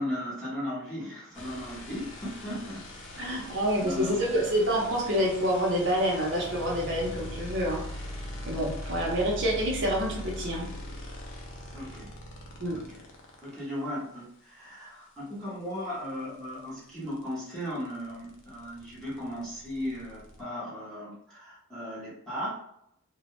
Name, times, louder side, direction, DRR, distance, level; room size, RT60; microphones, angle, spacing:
voice 1, 0.0-2.8 3.1-3.3 3.8-4.4 11.7-12.1 12.9-13.0 13.4-22.6, equal, ahead, -10 dB, 0.8 m, -36 dB
sound 1, 1.3-13.6 15.7-15.8 16.0-20.4, left 1 dB, 55° left, 0.5 m, -41 dB
voice 2, 3.2-8.0 8.5-10.7 12.6-12.8, equal, 55° right, -1 dB, 0.7 m, -27 dB
2.2 x 2.0 x 3.0 m, 0.74 s
head